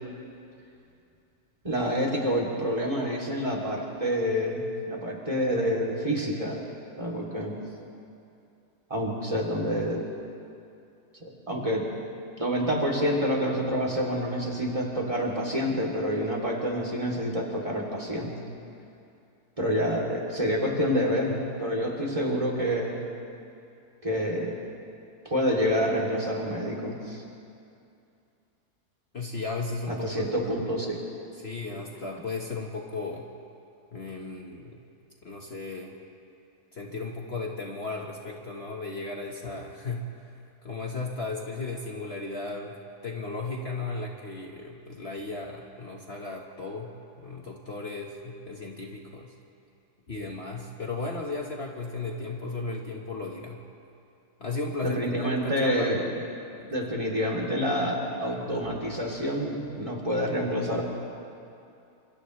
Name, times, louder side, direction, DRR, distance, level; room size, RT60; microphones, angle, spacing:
voice 1, 1.6-4.6 4.9-6.7 7.0-7.6 8.9-10.0 11.2-11.8 12.4-18.3 19.6-21.3 21.6-23.0 24.0-24.6 25.2-27.2 29.9-31.0 54.8-56.0 56.7-60.8, equal, 20° right, -3 dB, 3.2 m, -27 dB
voice 2, 29.1-30.7 31.3-33.2 33.9-34.8 35.2-35.9 36.7-40.1 40.6-42.8 43.0-46.9 47.2-49.3 50.1-53.6 54.4-56.2 56.6-56.7, left 3 dB, 40° left, -1 dB, 1.6 m, -35 dB
30.0 x 27.5 x 3.3 m, 2.6 s
omnidirectional pair, 1.7 m